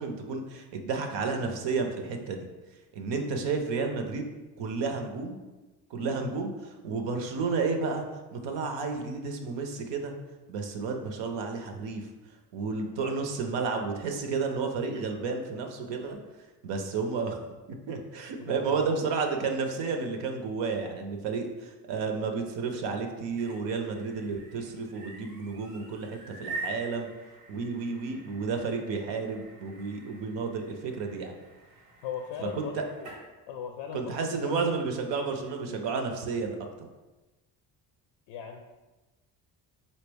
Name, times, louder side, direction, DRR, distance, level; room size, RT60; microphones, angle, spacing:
voice 1, 0.0-2.5 2.9-4.3 4.6-5.4 5.9-8.1 8.3-10.1 10.5-12.1 12.5-16.2 16.6-17.4 17.9-27.1 27.5-31.3 32.4-32.7 33.9-36.6, right 4 dB, 65° right, 4 dB, 0.7 m, -31 dB
voice 2, 18.4-18.8 32.0-33.1 33.5-34.7 38.3-38.6, left 7 dB, 75° left, 3 dB, 0.5 m, -39 dB
sound 1, 23.1-33.3, right 3 dB, 90° right, 1.0 m, -45 dB
4.0 x 2.1 x 3.3 m, 1.2 s
supercardioid pair, 65°, 46 cm